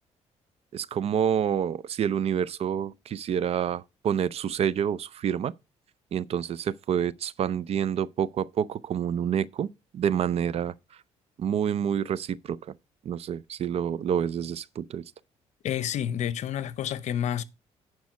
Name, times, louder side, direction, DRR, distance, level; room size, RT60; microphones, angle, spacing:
voice 1, 0.7-5.5 6.1-9.7 9.9-10.7 11.4-12.6 13.1-15.0, right 8 dB, 55° right, 0.5 m, -28 dB
voice 2, 15.6-17.4, left 10 dB, 65° left, 0.7 m, -29 dB
10.5 x 4.8 x 5.2 m
cardioid pair, 95°, 13 cm